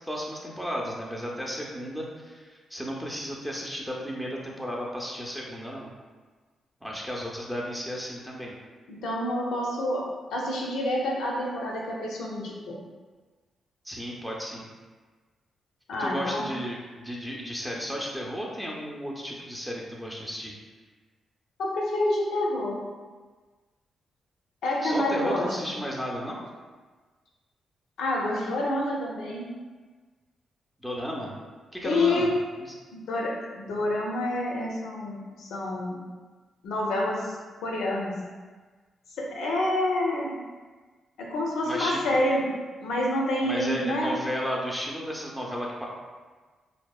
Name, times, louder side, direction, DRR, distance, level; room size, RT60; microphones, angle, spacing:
voice 1, 0.1-5.9 6.8-8.6 13.8-14.7 16.0-20.5 24.8-26.4 30.8-31.3 31.7-32.3 41.6-42.2 43.4-45.9, equal, 5° right, -3 dB, 0.5 m, -34 dB
voice 2, 8.9-12.8 15.9-16.5 21.6-22.8 24.6-25.7 28.0-29.5 31.8-32.3 32.9-36.0 36.6-38.1 39.2-40.3 41.2-42.4 42.8-44.2, left 1 dB, 85° left, -2 dB, 0.4 m, -28 dB
2.7 x 2.0 x 2.3 m, 1.4 s
cardioid pair, 70°, 0 cm